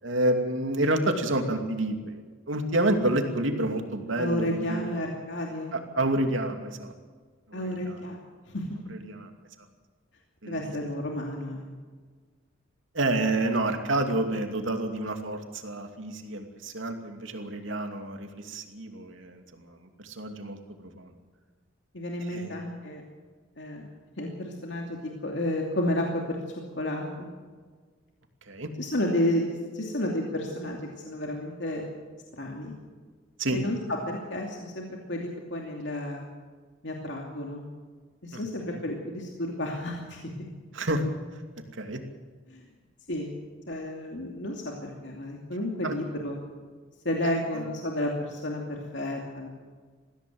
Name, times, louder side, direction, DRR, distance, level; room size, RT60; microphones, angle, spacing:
voice 1, 0.0-2.2 2.5-5.0 5.7-6.9 7.5-8.0 8.9-9.3 10.4-10.7 12.9-20.6 21.0-21.1 22.2-22.5 28.5-28.7 33.4-33.6 38.3-38.4 38.7-38.8 40.7-41.0 41.8-42.0 45.8-45.9 47.2-47.7, right 1 dB, 75° right, 5 dB, 2.7 m, -29 dB
voice 2, 4.2-5.7 7.5-8.2 8.5-8.7 10.5-11.7 21.9-23.0 23.6-23.9 24.2-26.4 26.8-27.3 28.8-30.8 31.1-31.8 32.3-32.7 33.5-33.8 34.1-36.3 36.8-37.6 38.2-40.2 42.5-42.6 43.1-43.3 43.7-46.4 47.0-49.5, left 1 dB, 65° left, 0 dB, 2.7 m, -31 dB
21.0 x 15.5 x 7.8 m, 1.5 s
head